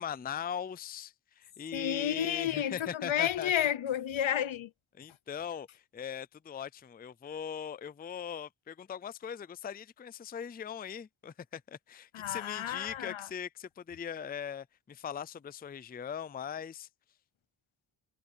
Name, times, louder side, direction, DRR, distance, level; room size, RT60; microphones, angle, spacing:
voice 1, 0.0-3.5 4.9-16.9, left 8 dB, 20° left, 0.4 m, -40 dB
voice 2, 1.7-4.7 12.1-13.3, left 10 dB, 80° left, 0.9 m, -31 dB
wide cardioid pair, 130°, 46 cm